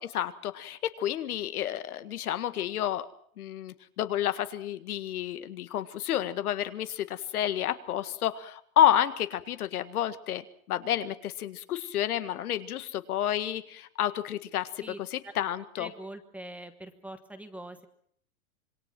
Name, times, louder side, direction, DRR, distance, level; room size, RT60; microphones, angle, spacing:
voice 1, 0.0-3.1 3.4-15.9, left 11 dB, 75° left, 11 dB, 1.8 m, -30 dB
voice 2, 15.8-17.9, right 1 dB, 5° right, 8 dB, 1.2 m, -43 dB
26.5 x 22.0 x 6.1 m, 0.63 s
supercardioid pair, 155°, 44 cm